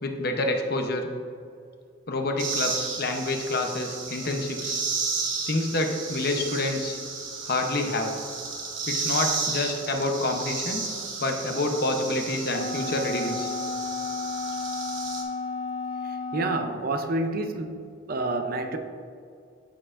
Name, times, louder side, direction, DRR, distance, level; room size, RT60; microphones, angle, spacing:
voice 1, 0.0-1.1 2.1-4.8 5.5-7.0 7.4-8.2 8.9-10.9 11.2-13.5, left 2 dB, 50° left, 4 dB, 0.7 m, -28 dB
sound 1, 2.4-15.2, right 4 dB, 75° right, 1.1 m, -33 dB
Wind instrument woodwind instrument, 12.5-16.8, left 3 dB, 90° left, 1.3 m, -32 dB
voice 2, 16.3-17.8 18.1-18.8, right 2 dB, 50° right, 6 dB, 0.5 m, -28 dB
13.0 x 4.6 x 2.5 m, 2.3 s
head